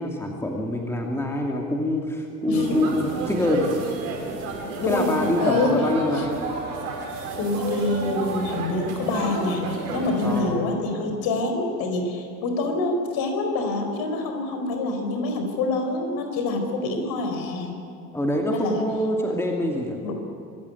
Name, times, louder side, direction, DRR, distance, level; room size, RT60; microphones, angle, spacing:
voice 1, 0.0-3.7 4.9-6.4 10.2-10.6 18.1-20.0, left 1 dB, 5° left, 1 dB, 2.6 m, -25 dB
voice 2, 2.5-2.8 4.8-5.7 6.1-6.3 7.4-17.7 18.5-18.8 20.0-20.2, left 2 dB, 45° left, 5 dB, 4.5 m, -26 dB
sound 1, 2.5-10.4, right 3 dB, 65° right, 5.3 m, -32 dB
25.5 x 14.5 x 9.4 m, 2.4 s
figure-of-eight pair, 70°, 49 cm